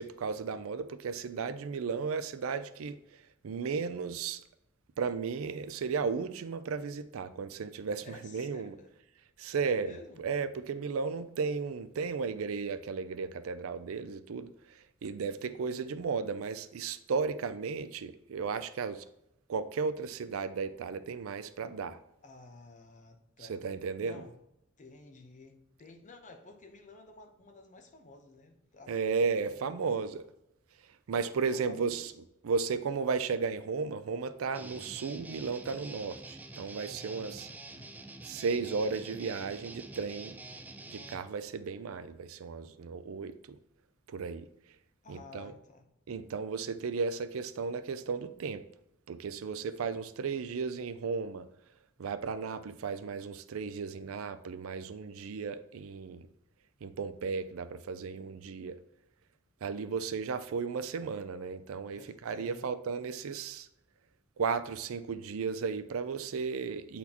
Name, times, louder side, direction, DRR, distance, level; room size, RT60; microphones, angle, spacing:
voice 1, 0.0-4.4 5.0-8.8 9.4-19.0 19.5-22.0 23.4-24.2 28.9-30.2 31.1-32.1 32.4-37.5 38.2-40.4 40.9-43.6 44.1-44.5 45.1-45.5 46.1-48.7 49.1-51.5 52.0-56.3 56.8-58.8 59.6-63.7 64.4-67.0, right 5 dB, 85° right, 0.4 m, -34 dB
voice 2, 8.0-8.9 9.6-10.2 15.4-15.7 22.2-23.6 24.0-24.4 24.8-28.9 29.3-29.8 31.1-31.3 31.5-32.2 37.1-38.1 45.0-45.9 61.9-62.7, left 3 dB, 40° left, 0.8 m, -53 dB
Guitar, 34.5-41.2, right 2 dB, 10° right, 0.3 m, -47 dB
8.1 x 4.2 x 2.8 m
head